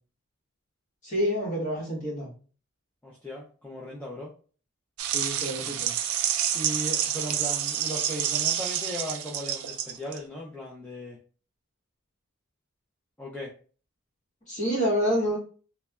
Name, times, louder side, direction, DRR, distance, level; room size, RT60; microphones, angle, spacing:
voice 1, 1.0-2.3 5.1-5.9 14.5-15.4, equal, 35° left, -4 dB, 1.2 m, -27 dB
voice 2, 3.0-4.3 6.5-11.2 13.2-13.5, equal, 5° left, -5 dB, 0.3 m, -37 dB
sound 1, 5.0-10.2, right 10 dB, 90° right, 0.3 m, -28 dB
3.1 x 2.1 x 2.2 m, 0.39 s
head